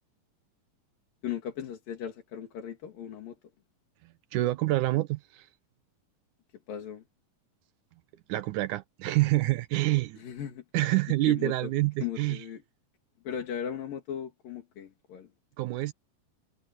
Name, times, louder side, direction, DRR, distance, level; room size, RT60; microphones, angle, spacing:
voice 1, 1.2-3.4 6.7-7.0 10.2-10.6 11.3-11.7 12.0-12.6 13.2-15.3, left 9 dB, 85° left, 4.2 m, -37 dB
voice 2, 4.0-5.5 8.3-10.2 10.7-12.4 15.6-15.9, right 17 dB, 75° right, 2.1 m, -27 dB
omnidirectional pair, 3.9 m